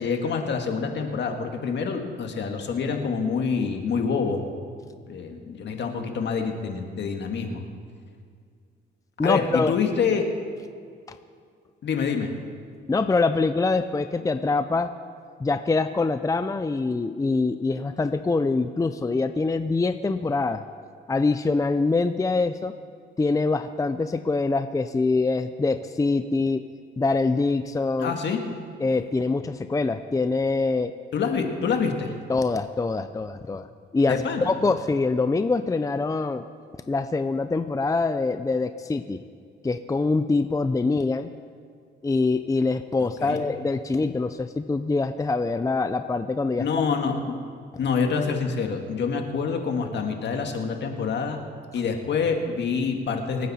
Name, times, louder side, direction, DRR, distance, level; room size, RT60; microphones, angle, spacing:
voice 1, 0.0-4.4 5.1-7.6 9.2-10.3 11.8-12.3 28.0-28.4 31.1-32.1 34.1-34.5 43.2-43.4 46.6-47.4 47.8-51.4 51.7-53.5, left 5 dB, 60° left, 4 dB, 1.9 m, -26 dB
voice 2, 9.2-9.7 11.1-11.2 12.9-14.9 15.4-20.6 21.1-22.7 23.2-26.6 27.0-28.1 28.8-30.9 32.3-33.7 33.9-36.4 36.9-39.2 39.6-41.3 42.0-46.7, left 3 dB, 15° left, 10 dB, 0.5 m, -24 dB
26.5 x 9.4 x 4.3 m, 2.2 s
cardioid pair, 90°, 20 cm